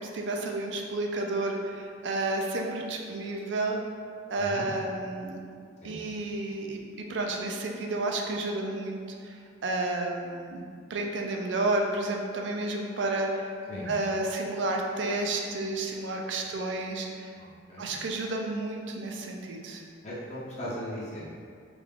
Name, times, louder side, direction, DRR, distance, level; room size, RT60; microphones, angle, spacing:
voice 1, 0.0-3.8 4.3-5.4 5.8-6.8 7.1-9.0 9.2-13.5 13.9-17.3 17.8-19.8, right 2 dB, 70° right, 1 dB, 0.4 m, -31 dB
voice 2, 4.3-4.7 5.8-6.0 13.7-13.9 17.3-18.0 20.0-21.2, equal, 35° left, -8 dB, 0.6 m, -38 dB
3.3 x 2.3 x 3.5 m, 2.2 s
head